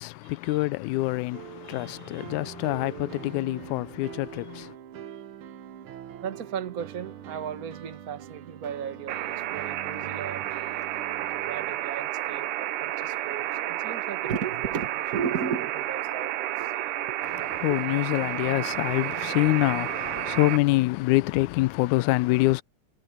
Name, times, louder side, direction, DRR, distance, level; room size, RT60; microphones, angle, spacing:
voice 1, 0.0-4.7 17.3-22.6, left 20 dB, 80° left, 1.9 m, -26 dB
sound 1, 1.3-11.8, right 10 dB, 65° right, 1.3 m, -43 dB
voice 2, 1.6-2.3 6.2-10.5 11.2-16.9 17.7-17.8 18.1-18.2, right 7 dB, 40° right, 1.5 m, -35 dB
sound 2, 9.1-20.6, right 14 dB, 90° right, 2.4 m, -31 dB
omnidirectional pair, 3.5 m